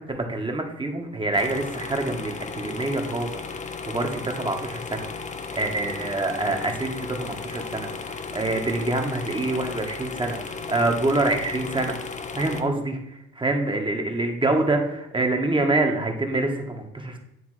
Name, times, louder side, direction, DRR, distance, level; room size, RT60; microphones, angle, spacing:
voice 1, 0.1-3.4 3.9-5.1 5.5-7.9 8.3-11.9 12.3-17.2, right 2 dB, 15° right, 3 dB, 1.3 m, -26 dB
sound 1, 1.3-12.6, left 4 dB, 25° left, 0.7 m, -35 dB
9.5 x 3.4 x 4.8 m, 0.83 s
cardioid pair, 90°, 30 cm